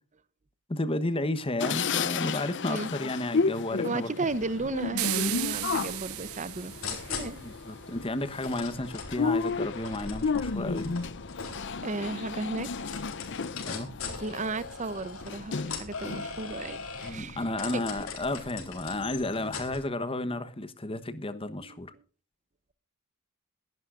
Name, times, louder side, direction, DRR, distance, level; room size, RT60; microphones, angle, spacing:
voice 1, 0.7-4.1 7.4-11.0 13.7-13.9 17.0-21.9, left 2 dB, 25° left, 1.1 m, -32 dB
sound 1, 1.6-16.4 16.8-17.8 18.3-18.4 18.7-19.6, left 5 dB, 55° left, 0.6 m, -33 dB
voice 2, 3.8-7.4 11.6-12.9 14.2-17.4 17.7-17.8 21.6-21.8, right 3 dB, 35° right, 0.7 m, -35 dB
sound 2, 4.2-19.8, left 4 dB, 70° left, 3.9 m, -41 dB
sound 3, 5.0-7.4, right 17 dB, 75° right, 0.5 m, -34 dB
23.0 x 11.0 x 2.5 m
head